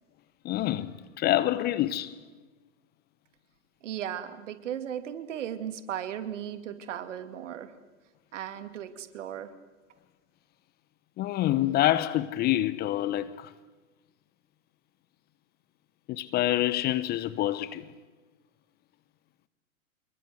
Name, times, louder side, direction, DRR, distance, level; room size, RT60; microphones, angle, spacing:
voice 1, 0.4-2.1 11.2-13.5 16.1-17.9, left 14 dB, 20° left, 0.9 m, -27 dB
voice 2, 3.8-7.7 8.3-9.5, right 10 dB, 55° right, 2.6 m, -36 dB
27.5 x 22.0 x 8.1 m
figure-of-eight pair, 110°, 43 cm